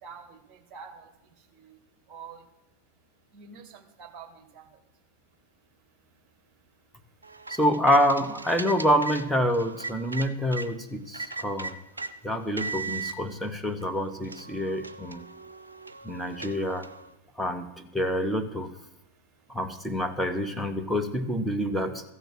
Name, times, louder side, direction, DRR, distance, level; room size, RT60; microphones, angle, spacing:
voice 1, 0.0-1.8 2.1-2.5 3.3-4.8 11.0-11.4 15.2-15.7 16.2-16.4, right 6 dB, 35° right, 6 dB, 1.9 m, -48 dB
sound 1, 7.2-10.7 11.1-12.1 12.6-13.2 13.8-13.9 14.2-17.1, right 3 dB, 80° right, 0.6 m, -38 dB
voice 2, 7.5-11.7 12.2-15.3 16.0-16.9 17.4-17.7 17.9-18.7 19.5-22.0, equal, ahead, 5 dB, 1.2 m, -27 dB
14.5 x 6.8 x 7.8 m, 0.87 s
figure-of-eight pair, 90°, 0 cm